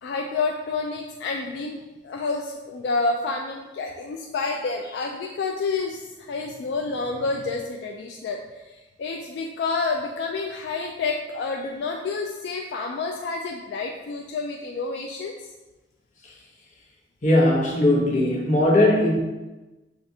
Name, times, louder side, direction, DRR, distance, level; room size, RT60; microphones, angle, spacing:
voice 1, 0.0-15.5, left 3 dB, 70° left, 1 dB, 0.3 m, -29 dB
voice 2, 17.2-19.2, left 1 dB, 45° left, -3 dB, 0.8 m, -19 dB
5.9 x 2.5 x 2.6 m, 1.1 s
head